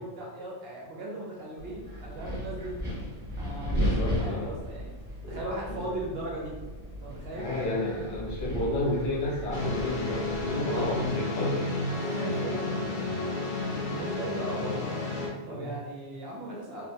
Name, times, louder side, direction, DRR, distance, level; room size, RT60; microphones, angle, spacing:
voice 1, 0.0-2.8 3.4-6.5 7.0-7.5 10.6-11.0 11.8-16.9, right 1 dB, 60° right, -3 dB, 0.8 m, -38 dB
Wind, 1.6-11.1, equal, 10° right, 1.0 m, -35 dB
voice 2, 3.7-4.5 5.2-5.4 5.7-5.8 7.3-11.7 12.4-12.6 14.5-14.8 15.5-15.7, left 1 dB, 35° left, -5 dB, 0.6 m, -32 dB
sound 1, 9.5-15.3, left 2 dB, 80° left, 1.2 m, -31 dB
3.9 x 2.2 x 2.7 m, 1.2 s
omnidirectional pair, 1.3 m